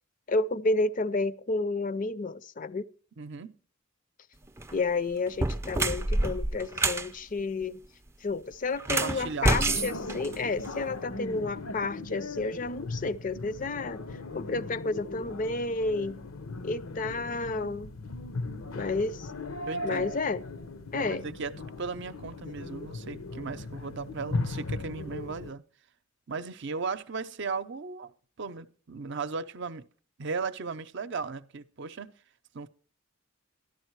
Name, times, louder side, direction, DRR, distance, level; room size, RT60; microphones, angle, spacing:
voice 1, 0.3-2.8 4.7-7.8 8.2-14.0 14.3-16.2 16.6-17.9 18.7-19.3 19.8-20.4 20.9-21.3, left 3 dB, 40° left, 0.5 m, -31 dB
voice 2, 3.2-3.6 8.9-9.8 19.6-20.1 20.9-25.6 26.3-28.1 28.4-29.9 30.2-32.1 32.5-32.7, right 4 dB, 60° right, 0.7 m, -36 dB
sound 1, 4.5-4.7 5.3-7.1 8.8-10.8, right 2 dB, 15° right, 0.5 m, -28 dB
sound 2, 9.6-25.5, left 2 dB, 80° left, 0.9 m, -38 dB
13.5 x 11.5 x 4.6 m
head